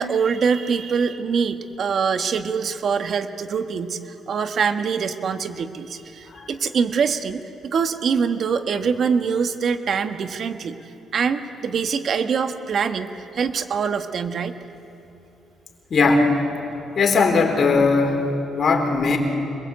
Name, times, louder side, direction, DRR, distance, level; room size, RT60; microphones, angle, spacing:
voice 1, 0.0-10.8 11.1-14.5, right 6 dB, 55° right, 8 dB, 1.6 m, -24 dB
voice 2, 15.9-16.3 17.0-19.2, left 4 dB, 50° left, 4 dB, 4.0 m, -19 dB
26.5 x 22.0 x 8.4 m, 2.8 s
cardioid pair, 90°, 0 cm